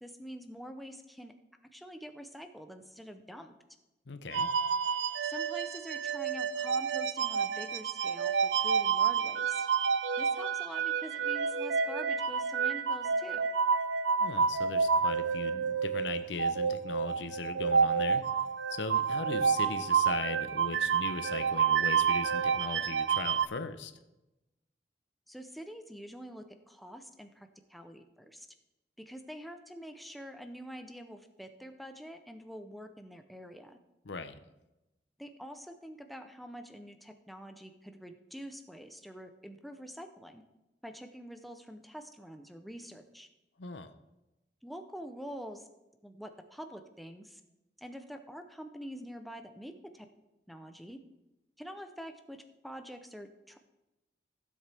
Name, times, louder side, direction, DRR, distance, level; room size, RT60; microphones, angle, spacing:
voice 1, 0.0-1.3 1.7-3.5 5.2-9.7 10.2-13.5 25.3-28.5 29.0-33.8 35.2-40.4 40.8-43.3 44.6-45.7 46.0-47.4 47.8-50.1 50.5-51.0 51.6-53.6, equal, ahead, 6 dB, 0.6 m, -46 dB
voice 2, 4.1-4.5 14.2-18.4 18.7-23.9 34.0-34.4 43.6-43.9, left 4 dB, 85° left, 10 dB, 0.8 m, -39 dB
sound 1, 4.3-23.4, right 6 dB, 80° right, 0.5 m, -29 dB
15.5 x 7.6 x 3.4 m, 0.98 s
head